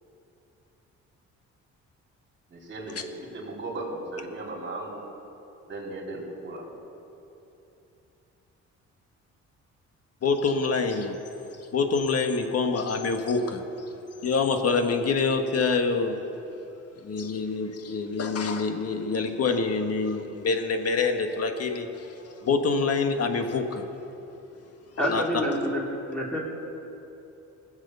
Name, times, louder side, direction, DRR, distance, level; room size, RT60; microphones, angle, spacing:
voice 1, 2.5-5.0 5.7-6.7, right 2 dB, 40° right, -1 dB, 3.7 m, -36 dB
voice 2, 10.2-11.2 11.7-13.6 14.2-16.2 17.0-23.8 25.0-25.2, left 4 dB, 55° left, 5 dB, 1.6 m, -26 dB
voice 3, 25.0-25.8 26.1-26.4, equal, 5° left, -4 dB, 3.9 m, -27 dB
20.0 x 8.1 x 6.8 m, 2.9 s
cardioid pair, 90°, 30 cm